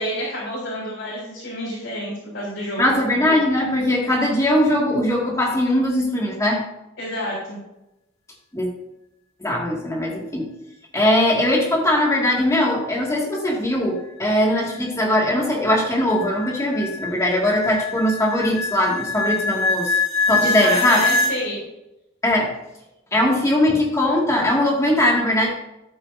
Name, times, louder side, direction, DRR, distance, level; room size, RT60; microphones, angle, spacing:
voice 1, 0.0-2.8 7.0-7.6 20.3-21.6, equal, 60° left, -8 dB, 4.2 m, -29 dB
voice 2, 2.8-6.6 8.5-8.7 9.4-10.5 10.9-20.0 20.3-21.0 22.2-22.5 23.1-25.5, left 1 dB, 15° left, -2 dB, 2.2 m, -20 dB
sound 1, 14.2-21.3, left 3 dB, 80° left, 1.9 m, -24 dB
13.5 x 8.6 x 2.7 m, 0.90 s
head